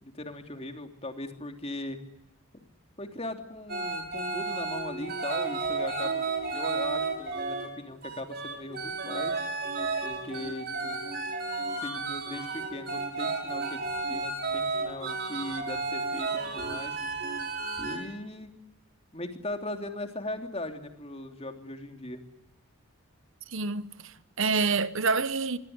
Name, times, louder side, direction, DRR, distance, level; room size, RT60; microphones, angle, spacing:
voice 1, 0.0-2.0 3.0-6.3 6.5-9.3 10.0-11.0 11.8-17.0 17.8-18.5 19.1-22.2, left 1 dB, 25° left, 3.1 m, -39 dB
sound 1, 3.7-7.7 8.0-18.0, right 3 dB, 45° right, 6.5 m, -32 dB
voice 2, 23.5-25.6, right 4 dB, 60° right, 1.1 m, -27 dB
25.5 x 23.5 x 9.6 m
head